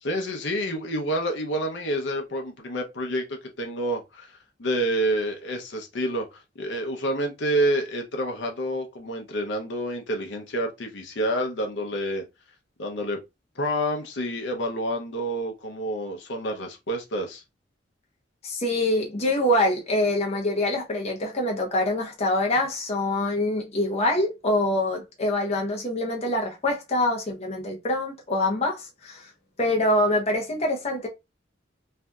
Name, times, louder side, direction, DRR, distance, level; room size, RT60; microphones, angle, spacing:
voice 1, 0.0-12.2 12.8-13.2 13.6-17.4, right 1 dB, 70° left, 0.7 m, -28 dB
voice 2, 18.4-29.3 29.6-31.1, left 1 dB, 35° left, 0.7 m, -25 dB
3.3 x 2.6 x 2.3 m
head